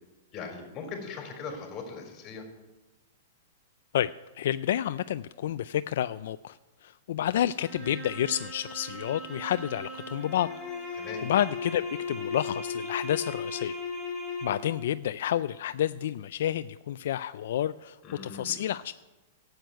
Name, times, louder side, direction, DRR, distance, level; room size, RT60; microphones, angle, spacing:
voice 1, 0.3-2.4 11.0-11.2 18.0-18.6, left 5 dB, 25° left, 3 dB, 3.7 m, -40 dB
voice 2, 3.9-10.5 10.9-13.8 14.4-18.0 18.2-18.9, left 11 dB, 65° left, 13 dB, 0.3 m, -30 dB
sound 1, 7.6-14.8, left 3 dB, ahead, 4.3 m, -37 dB
12.0 x 7.9 x 9.2 m, 1.1 s
hypercardioid pair, 145°, 0 cm